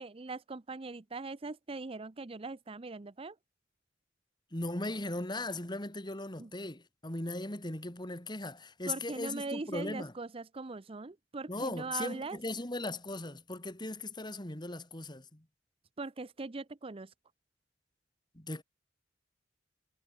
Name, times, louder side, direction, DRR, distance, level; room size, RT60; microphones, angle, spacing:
voice 1, 0.0-3.4 6.4-6.5 8.9-12.4 16.0-17.1, right 3 dB, 30° right, 0.6 m, -41 dB
voice 2, 4.5-10.1 11.5-15.4 18.3-18.6, left 2 dB, 25° left, 2.6 m, -38 dB
head